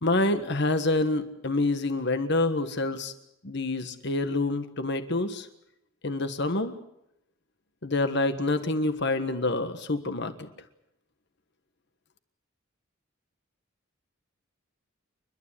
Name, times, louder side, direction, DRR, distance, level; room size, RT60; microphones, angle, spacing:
voice 1, 0.0-3.1 3.4-5.5 6.0-6.8 7.8-10.5, left 2 dB, 55° left, 9 dB, 1.5 m, -27 dB
29.5 x 12.5 x 10.0 m, 0.81 s
head